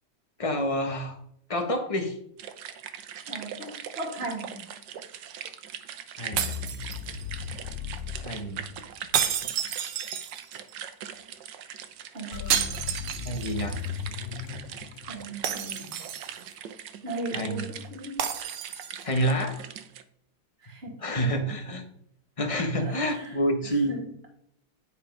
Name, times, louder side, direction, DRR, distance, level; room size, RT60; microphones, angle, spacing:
voice 1, 0.4-1.2 1.5-2.2 6.2-6.6 8.2-8.6 13.2-13.8 17.3-17.7 19.0-19.6 21.0-21.8 22.4-24.0, equal, 20° left, 4 dB, 1.0 m, -28 dB
sound 1, 2.4-20.0, right 9 dB, 65° right, 1.3 m, -42 dB
voice 2, 3.3-4.6 12.1-12.6 15.0-15.9 17.0-18.3 20.6-21.3 22.8-24.1, right 2 dB, 30° right, 1 dB, 2.3 m, -38 dB
sound 2, 6.3-9.3 12.3-15.8, left 9 dB, 85° left, 1.5 m, -37 dB
sound 3, 6.4-7.4 9.1-10.7 12.5-13.7 14.0-14.1 15.4-16.5 18.2-19.1, right 9 dB, 85° right, 1.8 m, -30 dB
9.9 x 5.4 x 5.3 m, 0.70 s
omnidirectional pair, 2.3 m